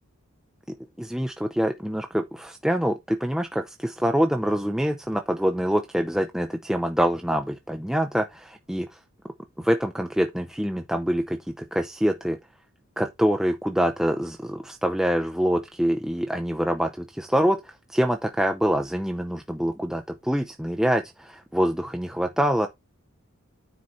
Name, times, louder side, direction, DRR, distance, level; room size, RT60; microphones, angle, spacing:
voice 1, 0.7-8.9 9.6-12.4 13.0-17.6 17.9-22.7, equal, ahead, 0.5 m, -25 dB
9.5 x 4.0 x 4.3 m
head